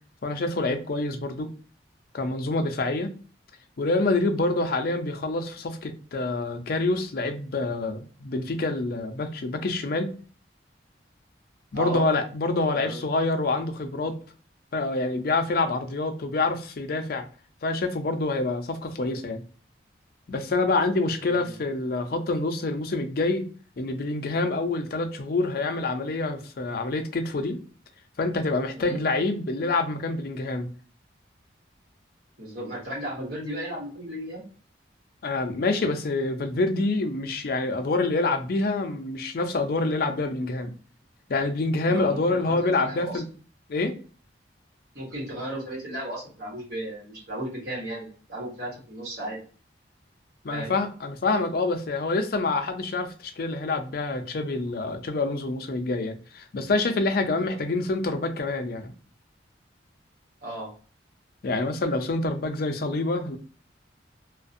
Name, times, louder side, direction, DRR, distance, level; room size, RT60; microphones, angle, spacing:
voice 1, 0.2-1.5 2.1-3.1 3.8-10.1 11.7-14.1 14.7-17.2 17.6-19.4 20.3-23.4 23.8-27.6 28.2-30.7 35.2-40.7 41.3-43.3 43.7-44.0 50.4-58.9 61.4-63.4, left 2 dB, 55° left, 6 dB, 0.4 m, -26 dB
voice 2, 32.4-34.4 41.9-43.2 44.9-49.4 50.5-50.7 57.5-57.6 60.4-60.7, right 1 dB, 60° right, -4 dB, 1.2 m, -35 dB
2.4 x 2.1 x 2.6 m, 0.39 s
head